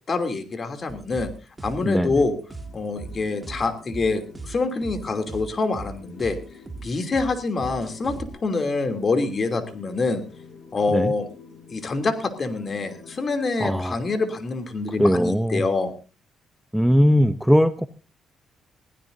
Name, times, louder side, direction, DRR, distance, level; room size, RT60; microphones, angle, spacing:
voice 1, 0.1-1.3 1.6-2.3 2.7-6.4 6.8-10.2 10.7-11.2 11.7-15.9, left 3 dB, 40° left, 7 dB, 2.9 m, -26 dB
sound 1, 0.9-8.3, right 3 dB, 20° right, 2.0 m, -38 dB
sound 2, 2.5-15.1, left 5 dB, 70° left, 6.1 m, -48 dB
voice 2, 13.6-14.0 15.0-15.6 16.7-17.9, equal, ahead, 11 dB, 0.7 m, -19 dB
22.0 x 16.0 x 2.7 m, 0.34 s
cardioid pair, 90°, 0 cm